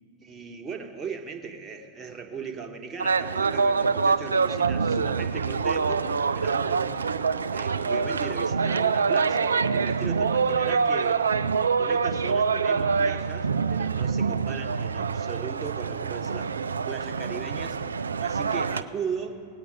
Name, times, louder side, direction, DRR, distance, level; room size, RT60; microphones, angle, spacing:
voice 1, 0.2-6.8 7.5-11.3 11.8-16.5 16.9-17.8 18.2-19.4, right 5 dB, 20° right, 4 dB, 1.1 m, -37 dB
sound 1, 3.0-18.8, right 5 dB, 75° right, 0.3 m, -25 dB
18.0 x 8.9 x 5.0 m, 2.3 s
figure-of-eight pair, 90°, 0 cm